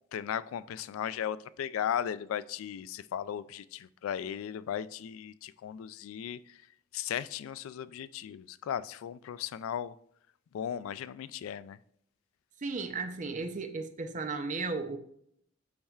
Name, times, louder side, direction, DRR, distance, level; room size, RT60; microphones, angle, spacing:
voice 1, 0.1-6.6 6.9-9.9 10.5-11.8, left 9 dB, 85° left, 0.3 m, -36 dB
voice 2, 12.6-15.0, right 4 dB, 40° right, 0.6 m, -35 dB
8.6 x 5.4 x 2.4 m
head